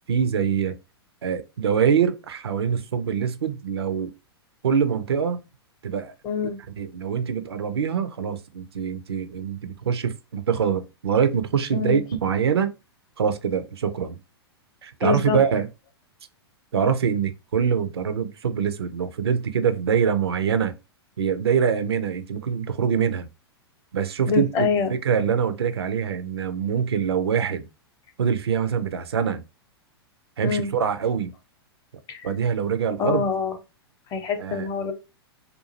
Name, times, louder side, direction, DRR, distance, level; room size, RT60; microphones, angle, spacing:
voice 1, 0.1-0.7 1.2-4.1 4.6-5.4 5.8-6.1 6.8-12.7 13.2-14.2 14.8-15.7 16.7-20.7 21.2-23.3 23.9-27.6 28.2-29.4 30.4-31.3 32.2-33.2 34.4-34.7, right 7 dB, 70° right, 0.5 m, -24 dB
voice 2, 6.2-6.6 11.7-12.0 15.0-15.4 24.3-25.0 30.4-30.7 32.1-32.3 33.0-33.6 34.1-34.9, left 5 dB, 30° left, 0.6 m, -25 dB
2.6 x 2.4 x 2.8 m
figure-of-eight pair, 105°, 14 cm